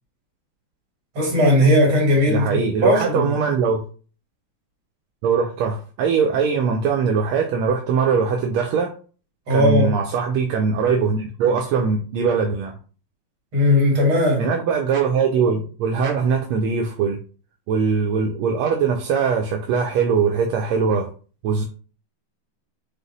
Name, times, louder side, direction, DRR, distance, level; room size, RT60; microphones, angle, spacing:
voice 1, 1.2-3.3 9.5-9.9 13.5-14.5, left 1 dB, 70° right, 2.7 m, -17 dB
voice 2, 2.3-3.8 5.2-8.9 9.5-12.7 14.4-17.2 17.7-21.1 21.4-21.6, right 5 dB, 85° right, 1.5 m, -21 dB
5.1 x 2.1 x 3.9 m
omnidirectional pair, 2.3 m